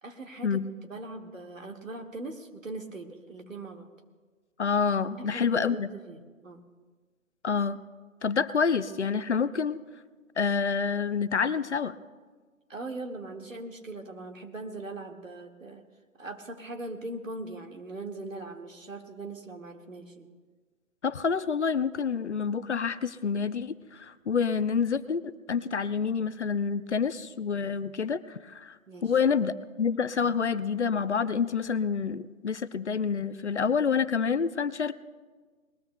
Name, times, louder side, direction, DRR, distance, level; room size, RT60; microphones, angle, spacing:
voice 1, 0.0-3.9 5.2-6.6 12.7-15.8 16.2-20.3 28.9-29.1 30.2-30.4, right 2 dB, 70° right, 3 dB, 1.8 m, -40 dB
voice 2, 4.6-5.9 7.4-7.8 8.2-9.8 10.4-11.9 21.0-25.2 25.5-28.7 29.0-34.9, left 6 dB, 55° left, 15 dB, 0.6 m, -28 dB
20.5 x 20.0 x 2.2 m, 1.4 s
figure-of-eight pair, 145°, 41 cm